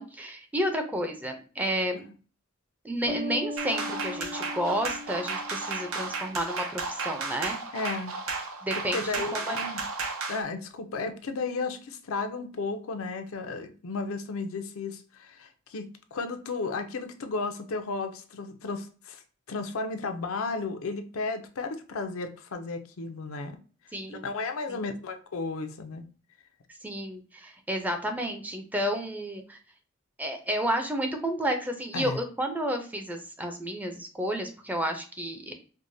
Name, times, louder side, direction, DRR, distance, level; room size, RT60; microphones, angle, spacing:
voice 1, 0.0-2.1 2.8-7.6 8.6-9.6 23.9-24.3 24.7-24.8 26.8-29.6 30.2-35.5, equal, 10° right, 5 dB, 0.4 m, -31 dB
sound 1, 3.1-6.4, left 1 dB, 35° right, 0.8 m, -38 dB
sound 2, 3.6-10.4, right 4 dB, 85° right, 0.7 m, -34 dB
voice 2, 7.7-8.2 8.9-9.8 10.3-19.2 19.5-23.6 24.2-26.0 31.9-32.2, left 3 dB, 80° left, 7 dB, 0.5 m, -34 dB
4.6 x 2.1 x 2.6 m, 0.38 s
head